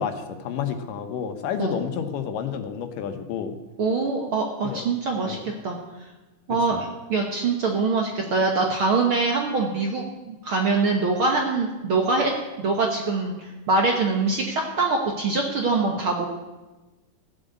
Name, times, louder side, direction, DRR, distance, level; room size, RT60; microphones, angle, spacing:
voice 1, 0.0-3.5 4.6-4.8 5.2-5.5 6.7-6.8, left 7 dB, 80° left, 8 dB, 2.7 m, -30 dB
voice 2, 3.8-5.8 6.5-16.4, right 3 dB, 55° right, 1 dB, 1.5 m, -24 dB
14.5 x 7.9 x 8.0 m, 1.1 s
omnidirectional pair, 3.8 m